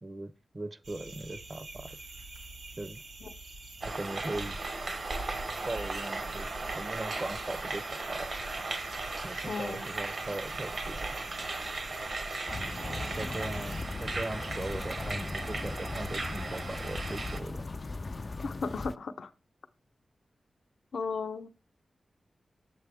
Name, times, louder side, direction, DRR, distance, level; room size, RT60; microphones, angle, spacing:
voice 1, 0.0-2.0 2.8-3.0 3.8-4.6 5.7-6.5 6.7-8.3 9.2-11.2 13.2-17.6, right 2 dB, 30° right, 0.6 m, -39 dB
sound 1, 0.8-13.8, right 2 dB, 80° right, 2.9 m, -48 dB
sound 2, 3.8-17.4, right 3 dB, 55° right, 1.0 m, -37 dB
voice 2, 9.5-9.8 18.4-19.3 20.9-21.5, left 4 dB, 80° left, 0.7 m, -35 dB
sound 3, 12.5-18.9, left 3 dB, 35° left, 0.3 m, -38 dB
8.5 x 7.6 x 3.4 m
wide cardioid pair, 135°, 0 cm